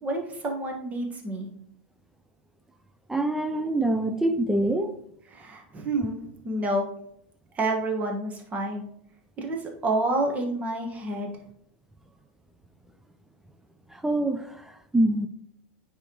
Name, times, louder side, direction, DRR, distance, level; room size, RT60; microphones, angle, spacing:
voice 1, 0.0-1.5 5.3-6.2 6.4-6.8 7.5-8.8 9.4-11.3, right 2 dB, 25° right, 2 dB, 1.4 m, -28 dB
voice 2, 3.1-4.9 13.9-15.3, right 1 dB, 5° right, 7 dB, 0.4 m, -25 dB
9.7 x 3.5 x 3.0 m, 0.70 s
hypercardioid pair, 120°, 6 cm